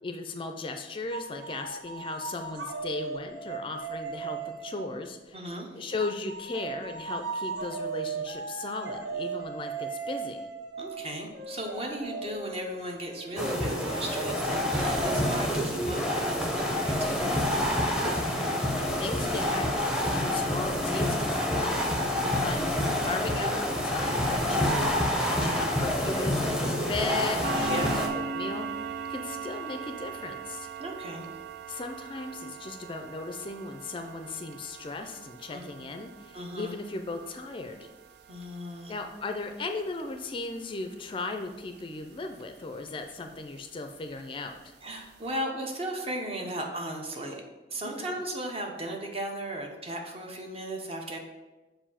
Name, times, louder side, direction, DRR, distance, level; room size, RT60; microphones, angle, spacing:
voice 1, 0.0-5.4 5.7-10.5 18.8-22.0 22.3-22.6 23.0-30.7 31.7-37.9 38.9-44.7 47.9-48.1, left 3 dB, 30° left, 6 dB, 0.4 m, -37 dB
sound 1, 1.1-5.0 6.0-17.3, right 4 dB, 85° right, 0.9 m, -38 dB
voice 2, 5.3-5.9 10.8-17.9 20.3-20.7 22.2-22.8 27.7-28.0 30.8-31.4 35.5-35.9 36.3-36.7 38.3-38.9 44.8-47.4 47.7-51.2, right 1 dB, 35° right, 2 dB, 0.8 m, -36 dB
sound 2, 13.4-28.1, left 1 dB, 5° right, 0.7 m, -27 dB
sound 3, 27.4-42.5 42.9-43.1 43.6-43.7 44.1-44.2 44.7-44.8 45.1-45.2, right 6 dB, 65° right, 0.5 m, -40 dB
6.8 x 2.6 x 5.6 m, 1.1 s
head